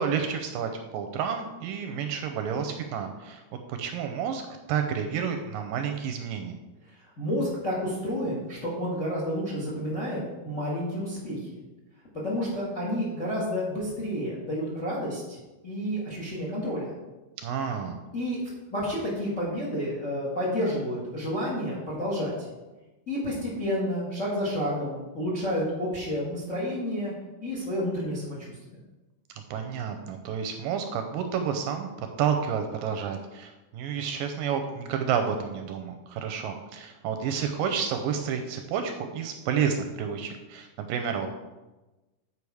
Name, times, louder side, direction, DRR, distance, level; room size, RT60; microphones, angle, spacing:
voice 1, 0.0-3.4 3.7-4.4 4.7-6.6 17.4-18.0 29.5-31.9 32.2-41.3, right 7 dB, 80° right, 6 dB, 2.1 m, -30 dB
voice 2, 7.0-11.5 12.1-15.4 15.6-16.9 18.1-18.4 18.7-22.3 23.1-27.1 27.4-28.4, equal, 40° left, -5 dB, 1.0 m, -30 dB
8.5 x 5.2 x 4.7 m, 1.1 s
omnidirectional pair, 4.3 m